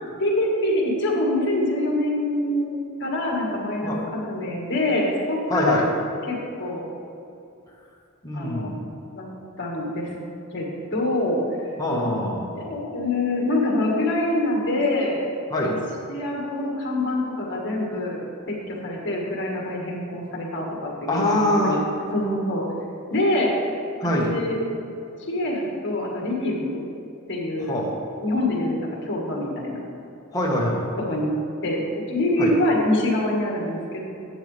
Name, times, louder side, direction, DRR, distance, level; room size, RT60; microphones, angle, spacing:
voice 1, 0.2-4.0 4.3-5.8 6.2-6.8 8.3-8.7 9.1-9.2 9.6-10.1 10.5-11.7 12.5-15.2 15.6-15.8 16.1-21.8 22.1-22.6 23.1-23.5 24.1-24.6 25.2-26.8 27.3-27.8 28.2-29.8 31.0-31.3 31.6-34.0, left 1 dB, 55° left, -1 dB, 1.7 m, -25 dB
voice 2, 5.5-5.8 8.2-8.8 11.8-12.5 15.5-15.8 21.1-21.8 24.0-24.3 27.7-27.9 30.3-30.8 32.4-32.5, left 1 dB, 15° left, -3 dB, 1.3 m, -24 dB
11.0 x 8.2 x 3.3 m, 2.6 s
head